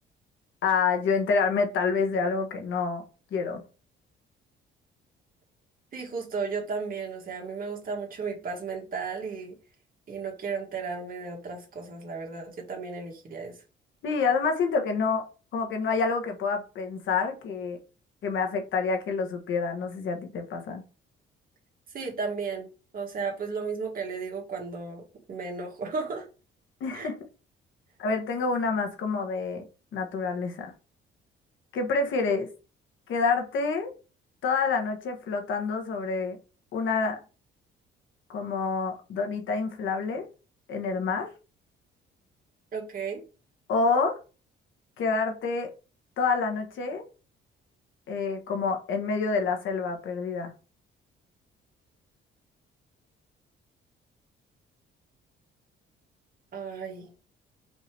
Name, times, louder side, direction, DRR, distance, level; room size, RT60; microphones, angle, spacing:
voice 1, 0.6-3.0 3.3-3.6 14.0-15.3 15.5-17.8 18.2-20.8 26.8-27.2 28.0-29.7 29.9-30.7 31.7-32.5 33.1-33.9 34.4-36.4 36.7-37.2 38.3-40.3 40.7-41.3 43.7-44.2 45.0-45.7 46.2-47.0 48.1-50.5, left 4 dB, 70° left, 1.2 m, -27 dB
voice 2, 5.9-9.6 10.1-13.6 21.9-22.7 22.9-26.3 26.9-27.1 42.7-43.2 56.5-57.1, right 5 dB, 45° right, 1.6 m, -34 dB
5.2 x 2.9 x 3.3 m
cardioid pair, 110°, 21 cm